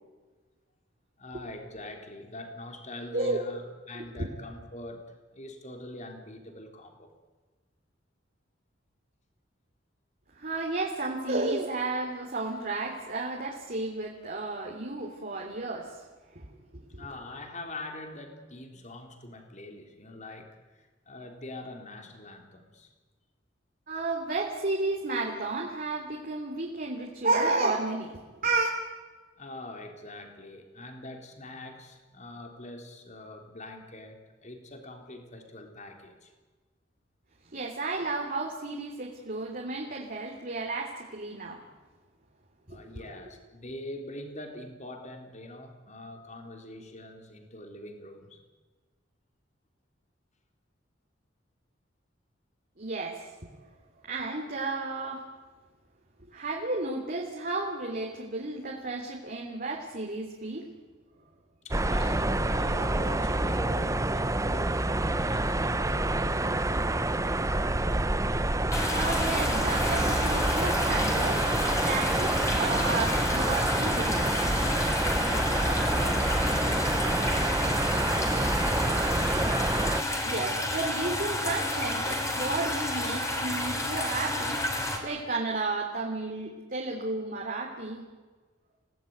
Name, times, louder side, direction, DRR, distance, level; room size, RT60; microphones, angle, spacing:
voice 1, 1.2-5.1 5.3-7.1 17.0-22.9 29.1-36.3 42.7-48.4 61.6-67.2 75.2-79.3, left 1 dB, 40° left, 4 dB, 3.7 m, -43 dB
voice 2, 3.9-4.3 10.4-16.0 16.3-16.5 16.7-16.8 23.9-28.1 28.4-28.7 37.5-41.6 42.7-43.2 52.8-53.3 54.0-55.2 56.3-60.6 62.2-62.3 68.9-71.5 71.9-74.2 75.5-75.8 80.2-84.6 85.0-88.0, right 3 dB, 45° right, 0 dB, 3.2 m, -32 dB
sound 1, 61.7-80.0, right 2 dB, 15° right, 0.9 m, -27 dB
sound 2, 68.7-85.0, left 1 dB, 15° left, 4.2 m, -30 dB
29.0 x 18.0 x 9.5 m, 1.4 s
head